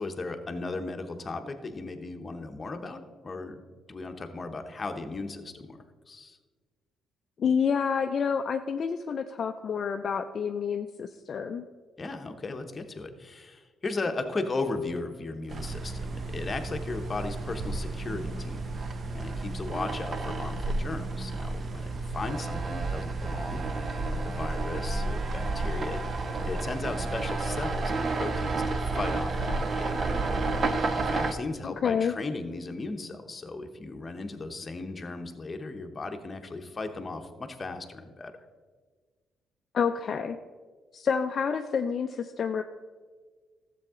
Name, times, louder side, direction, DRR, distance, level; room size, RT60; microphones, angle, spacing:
voice 1, 0.0-3.6 3.9-6.4 12.0-18.6 19.1-30.1 30.9-38.3, left 3 dB, 30° left, 6 dB, 1.0 m, -36 dB
voice 2, 7.4-11.6 31.6-32.1 39.7-40.4 40.9-42.6, left 6 dB, 50° left, 6 dB, 0.4 m, -28 dB
sound 1, 15.5-31.3, right 3 dB, 45° right, 0.7 m, -31 dB
12.5 x 7.7 x 3.7 m, 1.5 s
cardioid pair, 90°, 0 cm